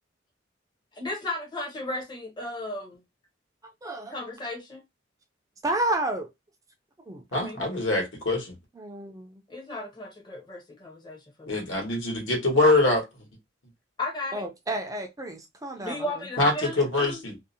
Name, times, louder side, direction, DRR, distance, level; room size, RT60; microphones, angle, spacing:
voice 1, 1.0-2.9 4.1-4.8 7.3-7.6 9.5-11.6 14.0-14.5 15.8-17.2, left 2 dB, 25° left, 0.6 m, -35 dB
voice 2, 3.8-4.2 5.6-6.3 7.1-7.2 8.8-9.3 14.3-16.1, right 1 dB, 15° right, 0.4 m, -30 dB
voice 3, 7.3-8.5 11.5-13.0 16.4-17.4, left 2 dB, 75° left, 1.2 m, -24 dB
2.6 x 2.0 x 2.6 m
head